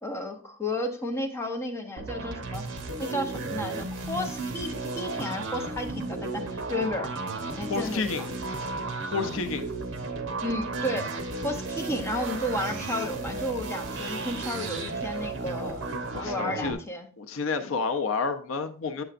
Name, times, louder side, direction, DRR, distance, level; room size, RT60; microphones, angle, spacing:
voice 1, 0.0-2.6 3.0-7.1 7.6-8.3 10.4-11.1 11.4-15.9 16.2-17.1, left 1 dB, 15° left, 0.9 m, -32 dB
sound 1, 2.0-16.7, right 3 dB, 60° right, 1.0 m, -34 dB
voice 2, 7.7-8.2 9.1-9.7 16.1-16.8 17.2-19.0, left 4 dB, 65° left, 0.6 m, -30 dB
7.8 x 6.8 x 2.5 m
head